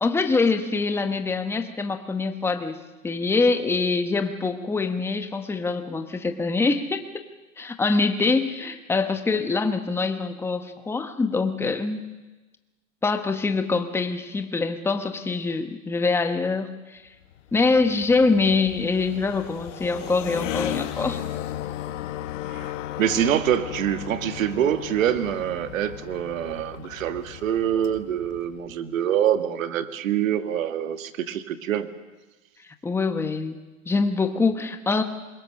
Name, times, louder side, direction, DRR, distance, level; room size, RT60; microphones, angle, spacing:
voice 1, 0.0-7.1 7.6-12.0 13.0-17.0 17.5-21.2 32.8-33.6 33.9-35.0, left 4 dB, 5° left, 8 dB, 1.0 m, -24 dB
sound 1, 17.2-28.8, left 13 dB, 65° left, 1.6 m, -35 dB
voice 2, 23.0-31.9, right 10 dB, 75° right, 10 dB, 1.8 m, -25 dB
26.5 x 21.5 x 6.5 m, 1.2 s
hypercardioid pair, 140°, 40 cm